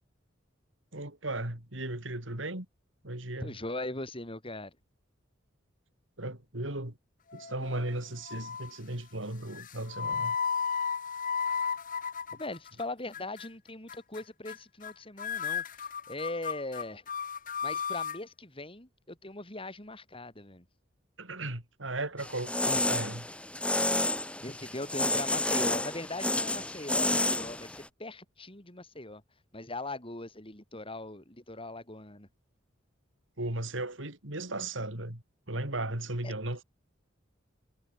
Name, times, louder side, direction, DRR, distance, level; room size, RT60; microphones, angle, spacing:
voice 1, 0.9-2.7 3.0-3.5 6.2-7.0 7.3-10.4 21.2-23.3 33.4-36.6, right 2 dB, 80° right, 4.9 m, -36 dB
voice 2, 3.4-4.7 12.3-15.6 16.1-17.0 17.6-20.7 24.4-29.2 29.5-32.3 36.2-36.3, left 2 dB, 30° left, 5.9 m, -40 dB
sound 1, 7.3-7.9 8.3-8.8 9.5-12.8 13.1-13.5 13.9-14.2 14.5-14.6 14.8-14.9 15.2-18.2, left 6 dB, 45° left, 1.7 m, -34 dB
sound 2, 22.2-27.9, left 2 dB, 5° left, 1.4 m, -30 dB
head